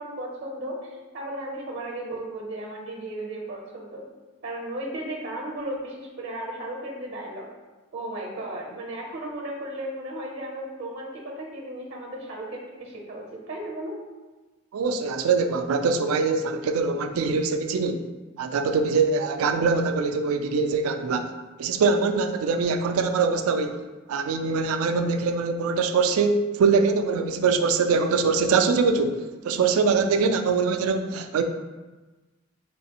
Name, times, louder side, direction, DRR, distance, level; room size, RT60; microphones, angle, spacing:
voice 1, 0.0-4.0 4.4-7.5 7.9-14.0, right 1 dB, 60° right, -1 dB, 0.7 m, -35 dB
voice 2, 14.7-18.1 18.4-21.3 21.6-23.8 24.1-31.4, right 4 dB, 85° right, 8 dB, 0.3 m, -23 dB
3.9 x 3.3 x 2.8 m, 1.2 s
head